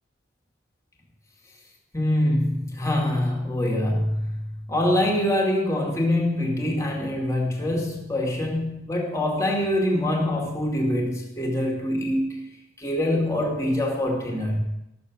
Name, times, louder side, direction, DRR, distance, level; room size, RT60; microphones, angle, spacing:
voice 1, 1.9-12.4 12.8-14.6, left 1 dB, 15° left, 0 dB, 2.4 m, -24 dB
13.5 x 6.7 x 7.3 m, 0.87 s
head